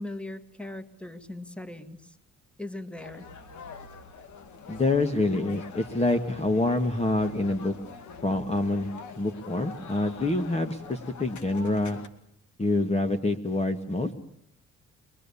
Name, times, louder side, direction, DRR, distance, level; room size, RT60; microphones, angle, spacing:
voice 1, 0.0-2.2 2.6-3.3, left 1 dB, 5° left, 11 dB, 2.0 m, -39 dB
sound 1, 3.0-12.1, left 4 dB, 75° left, 2.3 m, -44 dB
voice 2, 4.7-7.7 8.2-8.9 9.2-12.0 12.6-14.1, left 2 dB, 20° left, 6 dB, 1.6 m, -26 dB
23.5 x 23.0 x 7.1 m, 0.70 s
cardioid pair, 90°, 30 cm